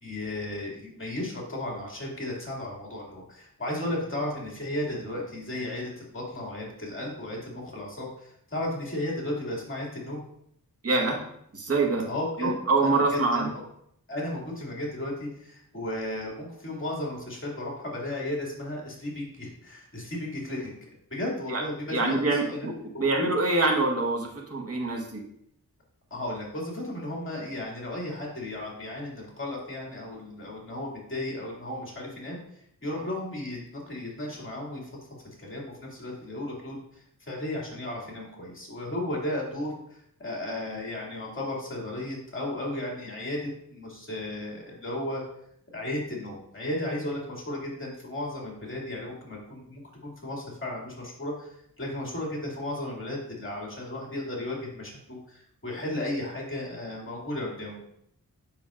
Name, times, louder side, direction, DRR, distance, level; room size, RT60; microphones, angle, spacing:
voice 1, 0.0-10.2 12.0-12.5 12.8-13.5 14.1-22.7 22.9-23.0 26.1-32.4 32.8-34.9 35.4-39.8 40.2-45.2 45.7-57.8, left 1 dB, 35° left, -3 dB, 2.4 m, -34 dB
voice 2, 10.8-11.2 11.5-12.0 12.4-13.5 21.5-21.6 21.9-25.2, right 3 dB, 45° right, -1 dB, 1.3 m, -25 dB
7.4 x 6.0 x 2.5 m, 0.72 s
cardioid pair, 65°, 35 cm